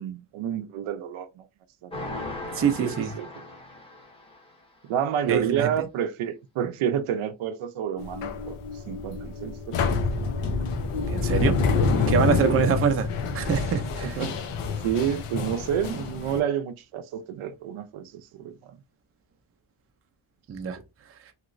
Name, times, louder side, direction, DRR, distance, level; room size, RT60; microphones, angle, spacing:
voice 1, 0.0-1.5 1.8-1.9 2.8-3.4 4.9-8.6 8.9-10.0 12.4-12.6 14.0-14.3 14.8-18.8, right 9 dB, 80° right, 0.5 m, -29 dB
sound 1, 1.9-4.6, left 2 dB, 10° left, 0.6 m, -38 dB
voice 2, 2.5-3.1 5.3-5.7 11.1-11.6 12.1-13.1 13.3-14.2 20.5-20.8, right 7 dB, 30° right, 0.4 m, -24 dB
sound 2, 8.0-16.4, left 4 dB, 90° left, 0.7 m, -27 dB
2.9 x 2.9 x 2.5 m
wide cardioid pair, 160°, 49 cm